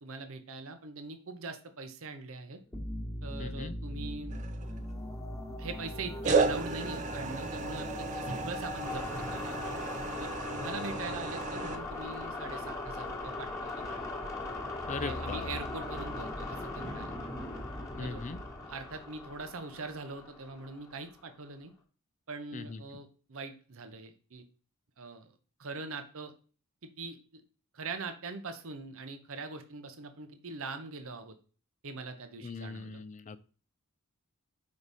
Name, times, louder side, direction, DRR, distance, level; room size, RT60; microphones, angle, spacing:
voice 1, 0.0-2.6 3.2-4.5 5.6-9.0 9.3-9.6 10.2-14.0 15.0-17.1 18.0-18.2 18.6-21.7 22.3-24.4 25.0-25.3 25.6-26.3 26.8-27.4 27.7-31.4 31.8-33.0, right 3 dB, 65° right, 8 dB, 0.8 m, -42 dB
sound 1, 2.7-21.2, left 2 dB, 15° left, 1.3 m, -39 dB
voice 2, 3.4-3.8 14.9-15.5 18.0-18.4 22.5-22.8 32.4-33.4, left 4 dB, 35° left, 14 dB, 0.4 m, -39 dB
sound 2, 4.3-5.0 6.2-11.8, right 4 dB, 35° right, 0.5 m, -34 dB
5.3 x 4.7 x 4.1 m, 0.38 s
head